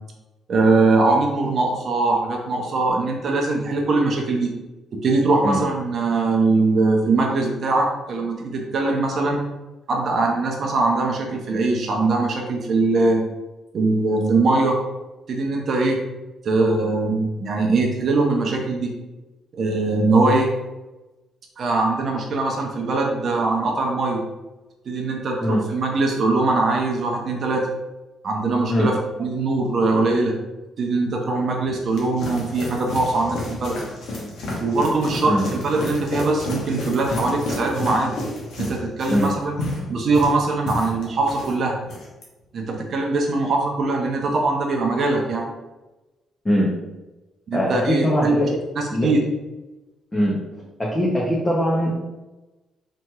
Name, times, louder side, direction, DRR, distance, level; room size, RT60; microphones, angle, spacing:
voice 1, 0.5-4.5 5.0-9.4 9.9-13.2 13.7-14.8 15.3-16.0 16.4-18.9 19.5-20.5 21.6-24.2 24.9-27.7 28.2-30.3 30.8-33.8 34.6-38.2 38.6-39.6 39.9-41.8 42.5-45.4 47.5-48.4 48.8-49.2, right 3 dB, 55° right, 0 dB, 0.5 m, -21 dB
sound 1, 31.6-41.5 41.8-42.2, left 1 dB, 75° left, 0.8 m, -31 dB
voice 2, 47.5-48.6 48.9-49.1 50.1-50.4 50.8-51.9, equal, 20° left, -5 dB, 0.6 m, -21 dB
2.8 x 2.8 x 2.3 m, 1.1 s
cardioid pair, 90°, 0 cm